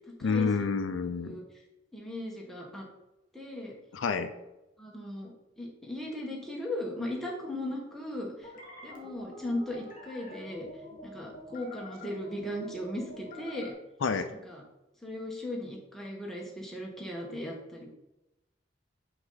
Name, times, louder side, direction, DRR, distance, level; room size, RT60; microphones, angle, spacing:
voice 1, 0.2-1.4 3.9-4.3 14.0-14.3, left 5 dB, 75° left, 9 dB, 0.5 m, -28 dB
voice 2, 1.9-2.8 3.3-3.7 4.8-5.3 5.6-8.5 8.8-10.7 11.0-13.7 14.3-14.6 15.0-17.9, left 1 dB, ahead, -2 dB, 1.3 m, -37 dB
sound 1, 8.4-13.7, left 1 dB, 45° left, 1.6 m, -47 dB
5.9 x 5.4 x 4.0 m, 0.97 s
head